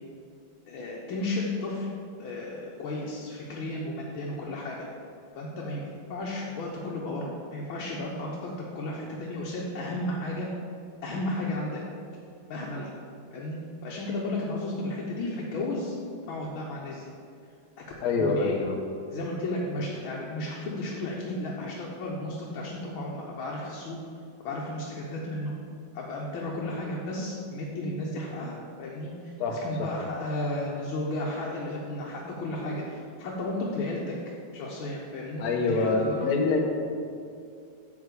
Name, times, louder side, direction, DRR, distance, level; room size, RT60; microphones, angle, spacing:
voice 1, 0.7-1.9 2.2-4.9 5.4-5.8 6.1-10.5 11.0-11.8 12.5-12.9 13.3-13.6 13.8-15.9 16.3-17.1 18.2-18.6 19.1-24.0 24.4-25.5 25.9-34.2 34.5-36.3, left 1 dB, 85° left, -3 dB, 1.7 m, -33 dB
voice 2, 18.0-18.8 29.4-29.9 35.4-36.6, left 3 dB, 55° left, 2 dB, 1.3 m, -26 dB
8.5 x 4.1 x 6.7 m, 2.4 s
omnidirectional pair, 2.2 m